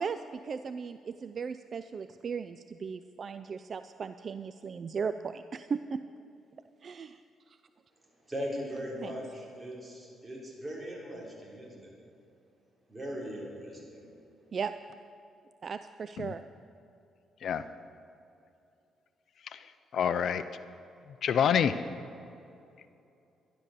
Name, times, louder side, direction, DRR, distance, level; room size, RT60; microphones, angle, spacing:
voice 1, 0.0-6.0 6.8-7.2 7.5-7.6 9.0-9.2 14.5-14.7 15.6-16.4, right 5 dB, 45° right, 11 dB, 0.4 m, -37 dB
voice 2, 8.2-11.9 12.9-14.1, equal, 20° right, -3 dB, 4.1 m, -39 dB
voice 3, 19.9-20.4 21.2-21.7, left 8 dB, 65° left, 12 dB, 0.5 m, -27 dB
12.0 x 11.5 x 6.7 m, 2.7 s
cardioid pair, 90°, 0 cm